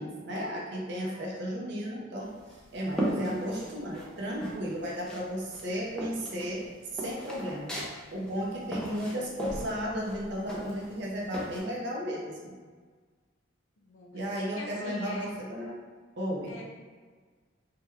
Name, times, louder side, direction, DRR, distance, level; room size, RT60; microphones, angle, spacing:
voice 1, 0.0-2.3 2.7-6.7 6.9-7.7 8.1-12.6 14.1-15.8 16.2-16.6, equal, 60° right, -3 dB, 0.5 m, -34 dB
sound 1, 2.2-4.1 4.4-5.3 5.5-11.6, right 1 dB, 5° left, 0.4 m, -36 dB
voice 2, 13.8-14.3 14.5-15.4 16.5-16.6, left 1 dB, 85° left, 0 dB, 0.6 m, -42 dB
3.3 x 2.1 x 3.2 m, 1.5 s
head